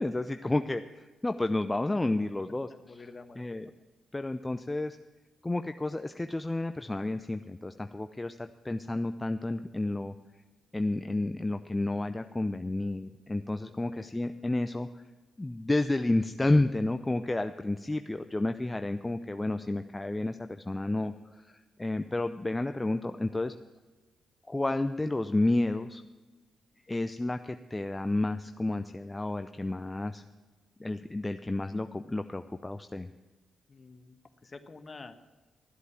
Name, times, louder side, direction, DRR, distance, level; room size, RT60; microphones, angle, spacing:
voice 1, 0.0-2.7 3.4-3.7 4.1-5.0 5.4-10.1 10.7-14.9 15.4-21.1 21.4-23.5 24.5-26.0 26.9-30.2 30.8-33.1, left 2 dB, 20° left, 8 dB, 0.6 m, -31 dB
voice 2, 2.7-3.5 13.7-14.1 33.7-35.1, left 3 dB, 40° left, 9 dB, 1.3 m, -49 dB
13.0 x 8.1 x 7.2 m, 1.3 s
hypercardioid pair, 45°, 0 cm